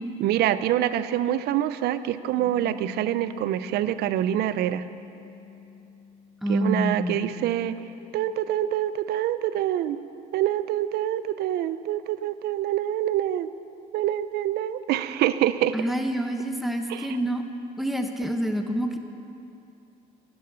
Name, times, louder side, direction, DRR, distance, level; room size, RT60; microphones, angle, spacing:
voice 1, 0.2-4.8 6.5-7.8 8.1-10.0 10.3-13.5 13.9-15.8 16.9-17.2, right 12 dB, 75° right, 14 dB, 0.5 m, -26 dB
sound 1, 2.4-7.0, left 6 dB, 70° left, 2.7 m, -45 dB
voice 2, 6.4-7.4 15.7-17.4 17.8-19.0, right 1 dB, ahead, 5 dB, 0.9 m, -27 dB
11.5 x 10.5 x 6.8 m, 2.7 s
cardioid pair, 110°, 17 cm